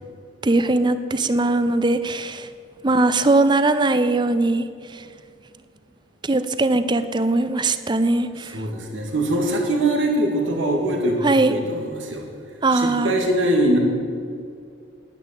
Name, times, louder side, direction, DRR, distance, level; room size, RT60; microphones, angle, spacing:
voice 1, 0.4-2.5 2.8-4.7 4.9-5.0 6.2-8.6 11.2-11.5 12.6-13.1, right 2 dB, 25° right, 11 dB, 0.6 m, -20 dB
voice 2, 8.5-12.3 12.7-13.8, right 1 dB, 85° right, 2 dB, 2.2 m, -22 dB
10.5 x 9.9 x 8.3 m, 2.3 s
head